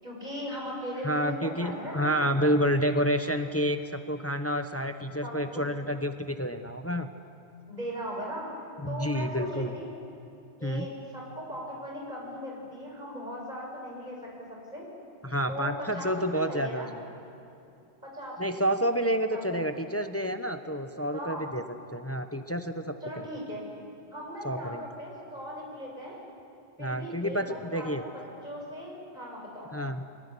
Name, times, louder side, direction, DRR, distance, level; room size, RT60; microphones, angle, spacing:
voice 1, 0.0-2.5 5.2-5.7 7.7-8.5 8.9-9.9 10.6-14.9 15.5-16.9 18.0-18.7 19.3-19.6 21.1-21.4 23.0-23.6 24.1-26.2 26.8-29.7, equal, 40° right, -2 dB, 7.0 m, -39 dB
voice 2, 1.0-7.1 8.8-9.7 10.6-10.9 15.2-17.0 18.4-21.6 21.9-23.3 24.4-24.8 26.8-28.0 29.7-30.0, equal, 15° left, 7 dB, 1.0 m, -29 dB
23.5 x 20.0 x 9.8 m, 2.8 s
omnidirectional pair, 1.1 m